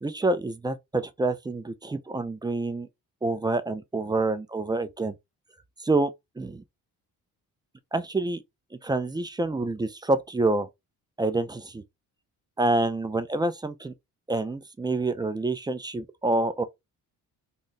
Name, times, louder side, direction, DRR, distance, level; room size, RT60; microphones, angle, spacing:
voice 1, 0.0-2.9 3.2-5.1 5.8-6.1 6.4-6.6 7.9-8.4 8.8-10.7 11.2-11.8 12.6-13.9 14.3-16.6, right 2 dB, 10° right, 0.3 m, -27 dB
2.5 x 2.0 x 3.9 m
hypercardioid pair, 50°, 43 cm